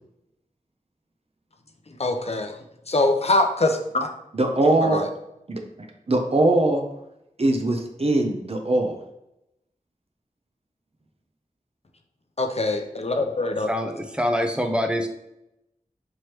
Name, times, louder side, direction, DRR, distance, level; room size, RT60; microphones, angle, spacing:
voice 1, 2.0-2.6 2.9-4.1 4.9-5.1 12.4-13.7, left 2 dB, 45° left, 4 dB, 0.5 m, -23 dB
voice 2, 4.3-5.0 5.5-5.6 6.1-6.8 7.4-9.0, right 2 dB, 45° right, 3 dB, 0.6 m, -21 dB
voice 3, 13.7-15.1, equal, 5° right, 4 dB, 0.6 m, -25 dB
4.6 x 3.1 x 3.0 m, 0.83 s
wide cardioid pair, 60°, 14 cm